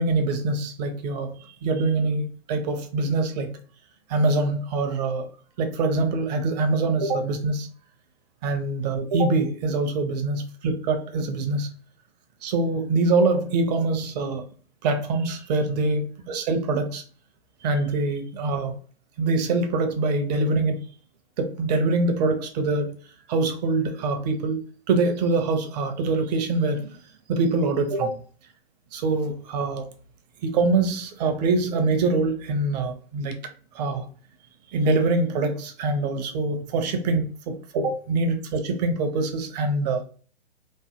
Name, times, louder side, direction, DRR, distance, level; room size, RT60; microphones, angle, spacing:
voice 1, 0.0-1.4 1.6-3.6 4.1-5.3 5.6-7.7 8.4-11.7 12.4-14.4 14.8-17.0 17.6-18.8 19.2-20.8 21.4-23.0 23.3-24.6 24.9-27.0 27.3-28.2 28.9-29.9 30.4-33.4 33.7-34.0 34.7-40.0, right 3 dB, 40° right, 7 dB, 0.7 m, -24 dB
3.1 x 2.0 x 2.8 m, 0.42 s
hypercardioid pair, 130°, 32 cm